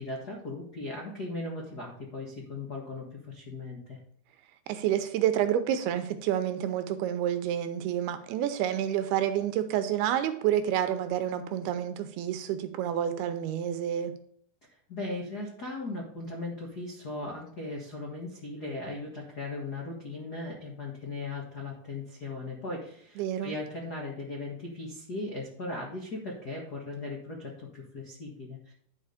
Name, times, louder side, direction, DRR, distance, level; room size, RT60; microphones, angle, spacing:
voice 1, 0.0-4.0 14.9-28.7, left 2 dB, 60° left, -2 dB, 1.0 m, -38 dB
voice 2, 4.7-14.1 23.2-23.6, right 10 dB, 80° right, 10 dB, 2.6 m, -29 dB
11.0 x 5.1 x 5.0 m, 0.64 s
omnidirectional pair, 4.7 m